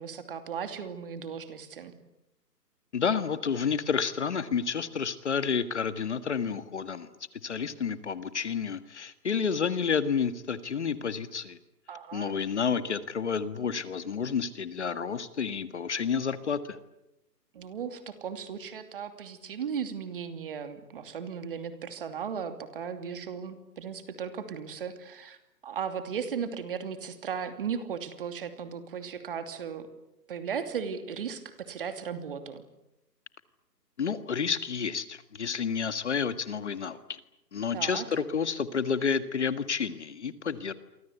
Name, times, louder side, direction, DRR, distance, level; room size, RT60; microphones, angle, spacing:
voice 1, 0.0-1.9 11.9-12.4 17.5-25.4 25.6-29.9 30.3-32.6 37.7-38.1, right 7 dB, 35° right, 8 dB, 2.8 m, -36 dB
voice 2, 2.9-7.1 7.4-11.6 12.1-16.8 34.0-37.2 37.5-40.7, left 6 dB, 40° left, 12 dB, 1.7 m, -30 dB
28.5 x 25.0 x 8.2 m, 0.90 s
hypercardioid pair, 165°, 50 cm